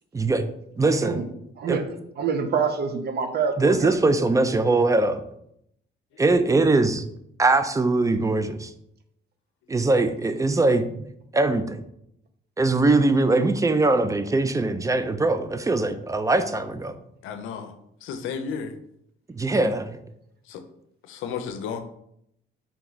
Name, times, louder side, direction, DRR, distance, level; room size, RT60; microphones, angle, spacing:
voice 1, 0.1-0.5 0.8-1.2 1.7-1.8 3.6-5.2 6.2-7.0 7.4-8.7 9.7-10.8 11.3-11.8 12.6-17.0 19.4-20.0, right 2 dB, 15° right, 10 dB, 0.4 m, -21 dB
voice 2, 0.8-1.2 1.6-1.8 2.2-3.9, right 6 dB, 55° right, 7 dB, 0.6 m, -26 dB
voice 3, 17.2-17.7 18.0-18.8 20.5-20.6 21.0-21.8, left 6 dB, 90° left, 8 dB, 0.5 m, -33 dB
3.4 x 3.0 x 3.8 m, 0.74 s
cardioid pair, 90°, 20 cm